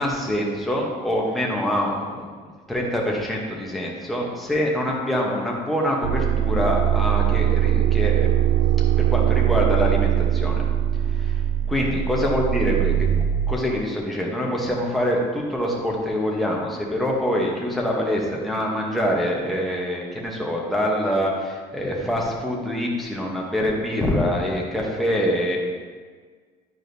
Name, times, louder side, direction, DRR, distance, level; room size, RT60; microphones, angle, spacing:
voice 1, 0.0-8.3 9.0-10.6 11.1-11.3 11.7-12.9 13.5-25.6, equal, ahead, -3 dB, 0.9 m, -25 dB
sound 1, 6.0-13.5, right 11 dB, 70° right, 0.4 m, -21 dB
10.5 x 4.8 x 2.7 m, 1.5 s
cardioid pair, 175°, 16 cm